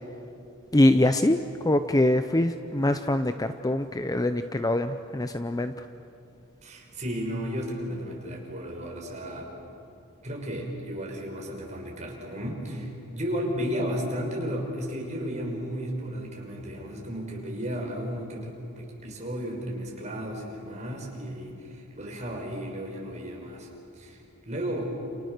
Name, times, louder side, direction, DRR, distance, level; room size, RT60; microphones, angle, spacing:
voice 1, 0.7-5.7, left 1 dB, 15° left, 9 dB, 0.6 m, -24 dB
voice 2, 6.6-9.5 10.2-23.7 24.0-25.0, equal, 30° right, -1 dB, 5.7 m, -34 dB
29.5 x 29.0 x 6.6 m, 2.7 s
head